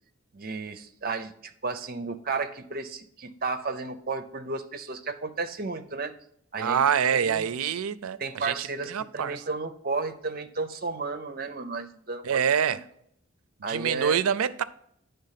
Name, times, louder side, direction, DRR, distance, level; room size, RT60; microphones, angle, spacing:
voice 1, 0.3-1.3 1.6-6.1 6.5-7.5 8.2-12.4 12.7-12.8 13.6-14.2, right 4 dB, 45° right, 0.6 m, -33 dB
voice 2, 6.6-9.4 12.2-12.8 13.7-14.6, right 8 dB, 90° right, 0.4 m, -26 dB
10.0 x 3.4 x 5.7 m
head